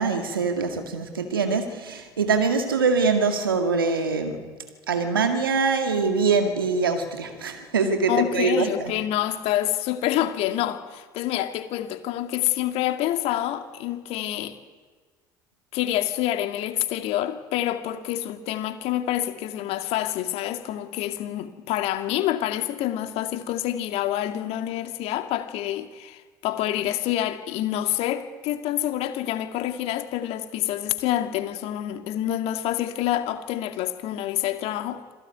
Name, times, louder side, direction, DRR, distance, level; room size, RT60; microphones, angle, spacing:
voice 1, 0.0-4.4 4.9-8.9, right 4 dB, 90° right, 6 dB, 2.1 m, -23 dB
voice 2, 8.1-14.5 15.7-35.0, left 13 dB, 60° left, 8 dB, 2.2 m, -27 dB
27.0 x 17.0 x 9.2 m, 1.5 s
hypercardioid pair, 65°, 11 cm